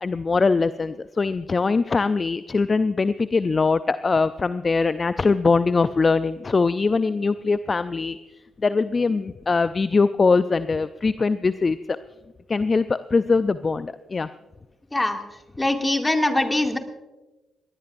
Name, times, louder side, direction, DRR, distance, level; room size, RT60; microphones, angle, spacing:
voice 1, 0.0-8.2 8.6-11.8 12.5-14.3, left 4 dB, 40° left, 13 dB, 0.5 m, -22 dB
voice 2, 15.6-16.8, left 1 dB, 20° left, 4 dB, 2.3 m, -22 dB
22.0 x 19.0 x 2.6 m, 1.1 s
hypercardioid pair, 40°, 0 cm